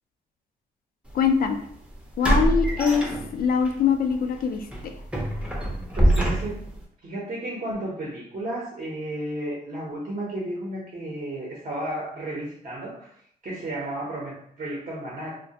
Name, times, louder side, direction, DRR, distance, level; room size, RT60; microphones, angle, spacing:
voice 1, 1.1-1.6 2.2-4.9, left 6 dB, 60° left, 6 dB, 0.4 m, -23 dB
sound 1, 1.1-1.3 2.2-3.7 4.1-4.3 4.7-6.8, right 1 dB, 5° right, 0.6 m, -24 dB
voice 2, 6.0-6.6 7.0-13.1 13.4-15.4, right 1 dB, 50° right, -3 dB, 0.7 m, -33 dB
2.2 x 2.1 x 2.7 m, 0.64 s
cardioid pair, 85°, 17 cm